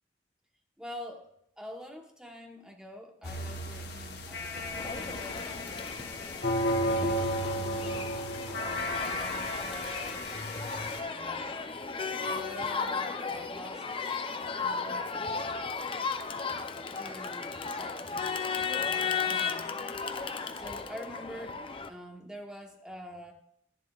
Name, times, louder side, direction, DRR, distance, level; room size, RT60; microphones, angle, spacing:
voice 1, 0.8-6.1 6.8-8.2 8.6-10.4 11.0-11.5 12.3-14.2 14.6-15.4 16.9-19.7 20.5-23.3, equal, 5° right, 2 dB, 1.0 m, -46 dB
sound 1, 3.2-11.0, equal, 60° left, 1.1 m, -33 dB
Crowd, 4.8-21.9, left 5 dB, 30° left, 0.5 m, -35 dB
11.5 x 10.5 x 2.4 m, 0.73 s
head